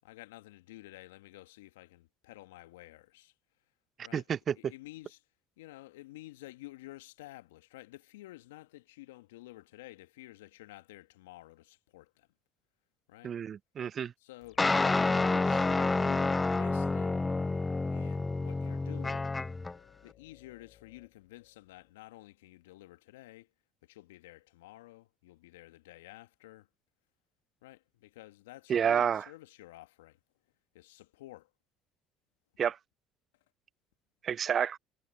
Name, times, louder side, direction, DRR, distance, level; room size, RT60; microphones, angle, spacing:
voice 1, 0.0-3.3 4.0-4.3 4.5-5.2 5.6-12.3 13.1-13.4 14.2-17.2 17.9-19.3 20.0-23.5 23.8-26.7 27.6-30.2 30.7-31.5, left 18 dB, 80° left, 1.5 m, -51 dB
voice 2, 4.1-4.5 13.2-14.1 28.7-29.2 32.6-32.8 34.2-34.8, right 8 dB, 45° right, 0.4 m, -29 dB
sound 1, 14.4-21.9, left 12 dB, 55° left, 6.7 m, -61 dB
sound 2, 14.6-19.7, left 3 dB, 20° left, 0.6 m, -29 dB
hypercardioid pair, 60°, 0 cm